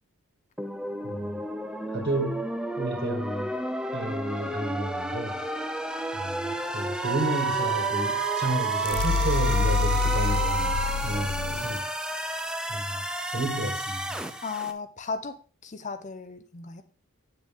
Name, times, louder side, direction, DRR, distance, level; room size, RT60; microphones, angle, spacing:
sound 1, 0.6-14.7, right 1 dB, 5° right, 0.5 m, -33 dB
voice 1, 1.0-1.4 1.9-2.4 2.8-3.6 3.9-5.4 6.1-11.8 12.7-13.0 13.3-14.2, right 1 dB, 50° right, 2.3 m, -31 dB
Wind instrument woodwind instrument, 7.0-11.2, right 9 dB, 75° right, 1.1 m, -29 dB
sound 2, 8.8-11.8, left 7 dB, 75° left, 0.4 m, -27 dB
voice 2, 14.4-15.4 15.6-16.8, left 4 dB, 35° left, 0.7 m, -35 dB
8.8 x 7.3 x 3.7 m
head